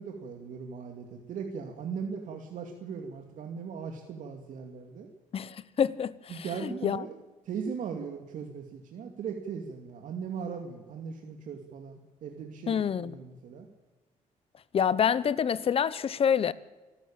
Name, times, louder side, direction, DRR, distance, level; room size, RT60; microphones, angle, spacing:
voice 1, 0.0-5.1 6.3-7.1 7.5-13.7, right 6 dB, 70° right, 2.4 m, -38 dB
voice 2, 5.3-7.0 12.7-13.2 14.7-16.5, left 7 dB, 45° left, 0.9 m, -27 dB
27.5 x 12.5 x 8.7 m
cardioid pair, 115°, 14 cm